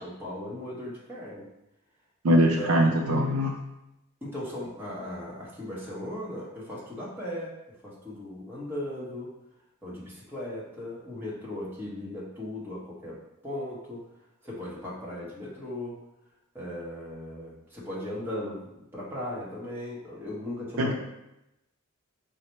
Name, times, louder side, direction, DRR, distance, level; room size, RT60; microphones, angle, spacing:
voice 1, 0.0-1.5 2.3-2.9 4.2-7.5 7.8-9.3 9.8-14.0 14.4-16.0 16.5-20.9, left 1 dB, 10° right, -7 dB, 1.0 m, -37 dB
voice 2, 2.2-3.6 20.8-20.9, equal, 70° right, 1 dB, 0.5 m, -22 dB
4.0 x 2.1 x 4.3 m, 0.88 s
head